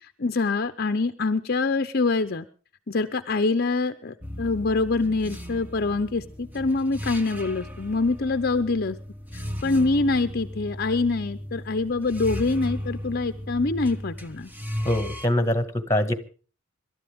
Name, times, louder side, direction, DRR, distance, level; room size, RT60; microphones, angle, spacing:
voice 1, 0.2-2.5 2.9-9.0 9.3-14.5, left 3 dB, 50° left, 10 dB, 0.8 m, -25 dB
sound 1, 4.2-15.3, equal, 10° right, 1.4 m, -36 dB
voice 2, 14.9-16.1, left 1 dB, 15° left, 11 dB, 1.9 m, -23 dB
26.5 x 13.0 x 3.6 m, 0.38 s
head